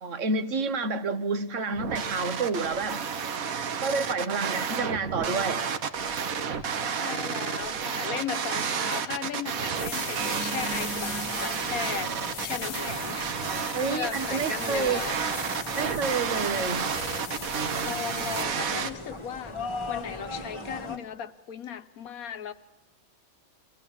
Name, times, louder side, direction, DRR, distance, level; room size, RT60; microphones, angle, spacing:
voice 1, 0.0-3.0 3.7-5.6 13.7-15.0 15.8-16.9, right 4 dB, 65° right, 1.4 m, -29 dB
sound 1, 1.7-18.9, right 6 dB, 85° right, 1.5 m, -31 dB
voice 2, 6.5-15.2 17.8-22.5, left 8 dB, 90° left, 1.4 m, -37 dB
sound 2, 9.7-18.4, left 7 dB, 65° left, 1.4 m, -40 dB
sound 3, 10.2-21.0, left 1 dB, 20° left, 1.4 m, -40 dB
24.0 x 16.5 x 7.3 m
omnidirectional pair, 1.4 m